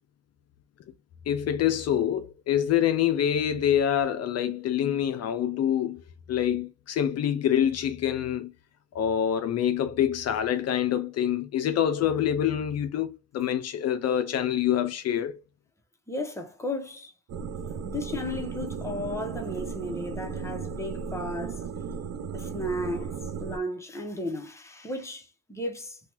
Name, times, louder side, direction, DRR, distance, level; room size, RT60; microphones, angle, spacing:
voice 1, 1.3-6.0 6.3-8.5 8.9-15.4, left 10 dB, 60° left, 0.4 m, -26 dB
voice 2, 16.1-17.1 17.8-21.6 22.3-26.0, left 1 dB, 10° left, 0.7 m, -34 dB
sound 1, 17.3-23.6, right 6 dB, 60° right, 0.5 m, -35 dB
2.7 x 2.3 x 2.9 m
cardioid pair, 90°, 30 cm